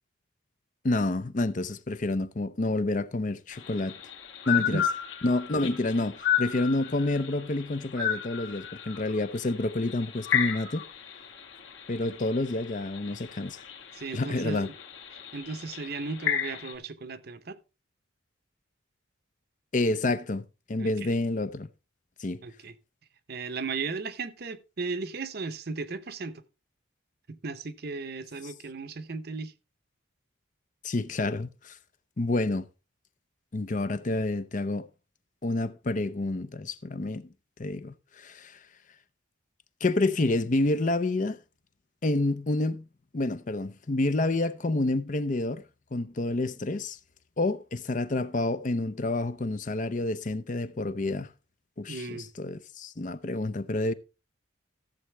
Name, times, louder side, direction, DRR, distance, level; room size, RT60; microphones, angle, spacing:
voice 1, 0.8-4.0 4.5-4.8 5.2-10.8 11.9-13.6 14.1-14.7 19.7-20.4 20.7-21.7 22.2-22.4 30.8-31.8 32.2-32.6 33.5-34.9 35.4-37.3 37.6-38.6 39.8-41.4 42.0-42.8 43.1-45.6 45.9-47.0 47.4-51.3 51.8-53.9, left 2 dB, 40° left, 0.6 m, -28 dB
sound 1, 3.5-16.7, left 9 dB, 65° left, 2.1 m, -34 dB
voice 2, 13.9-14.7 15.3-17.6 20.8-21.1 22.4-22.7 23.3-26.4 27.3-29.5 51.9-52.3, right 4 dB, 50° right, 0.8 m, -36 dB
14.0 x 7.5 x 3.3 m
head